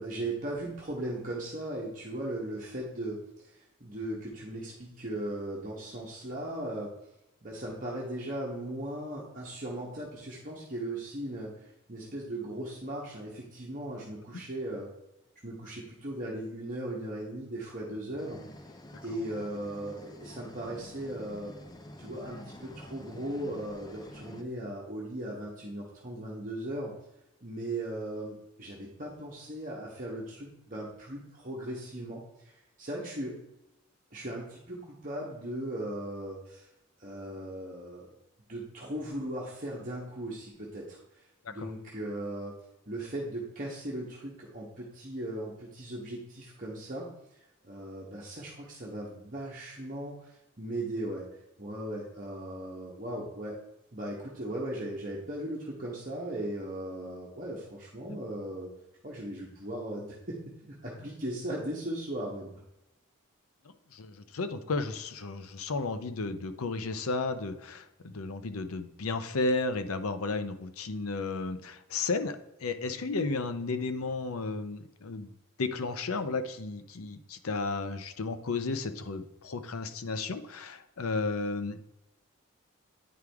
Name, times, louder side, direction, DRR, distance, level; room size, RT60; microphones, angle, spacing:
voice 1, 0.0-6.9 7.4-14.9 15.4-18.4 19.0-21.5 22.0-26.9 27.4-33.3 34.1-36.7 37.0-38.1 38.5-42.5 42.9-47.1 47.3-51.2 51.6-53.6 53.9-58.7 59.0-62.5, right 1 dB, 40° right, -5 dB, 1.2 m, -38 dB
sound 1, 18.2-24.4, left 1 dB, 20° left, 0.4 m, -48 dB
voice 2, 63.9-81.8, left 3 dB, 90° left, 10 dB, 0.6 m, -33 dB
9.5 x 4.8 x 3.5 m, 0.90 s
head